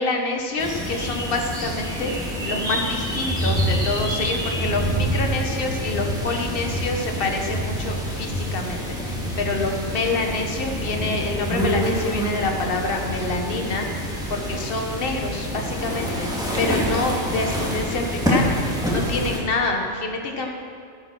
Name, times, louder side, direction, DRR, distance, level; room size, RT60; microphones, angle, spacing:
voice 1, 0.0-13.9 14.3-16.3 16.6-18.6 18.9-20.5, left 3 dB, 45° left, 2 dB, 1.4 m, -27 dB
sound 1, 0.6-19.4, equal, 5° right, 2.1 m, -26 dB
14.0 x 8.0 x 6.0 m, 2.3 s
omnidirectional pair, 1.3 m